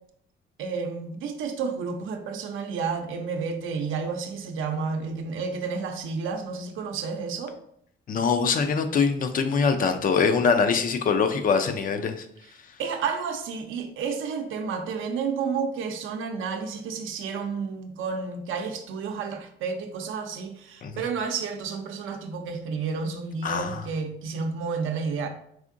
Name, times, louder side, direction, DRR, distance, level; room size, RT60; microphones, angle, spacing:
voice 1, 0.6-7.5 12.8-25.3, right 5 dB, 75° right, 5 dB, 0.6 m, -31 dB
voice 2, 8.1-12.3 20.8-21.0 23.4-23.8, left 5 dB, 45° left, 8 dB, 0.5 m, -23 dB
4.9 x 3.5 x 2.5 m, 0.68 s
cardioid pair, 145°, 21 cm